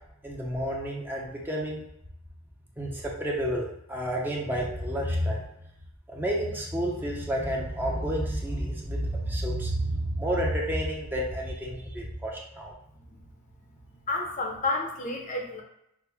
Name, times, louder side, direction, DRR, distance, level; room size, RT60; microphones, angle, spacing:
voice 1, 0.2-1.8 2.8-5.4 6.1-12.7, equal, 10° right, -2 dB, 0.6 m, -30 dB
voice 2, 14.1-15.6, left 2 dB, 35° left, 1 dB, 0.7 m, -30 dB
6.0 x 2.1 x 3.4 m, 0.79 s
head